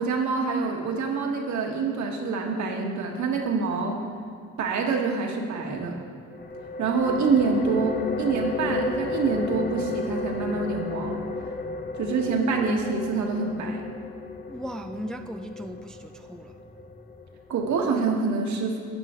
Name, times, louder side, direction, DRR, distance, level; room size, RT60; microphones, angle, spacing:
voice 1, 0.0-4.0 4.6-6.0 6.8-11.2 12.0-13.8 17.5-18.8, right 4 dB, 70° right, 1 dB, 1.6 m, -26 dB
sound 1, 6.3-17.7, left 3 dB, 30° left, 0.8 m, -34 dB
voice 2, 14.5-16.6, equal, ahead, 7 dB, 0.4 m, -37 dB
12.0 x 8.3 x 3.7 m, 2.3 s
cardioid pair, 90°, 30 cm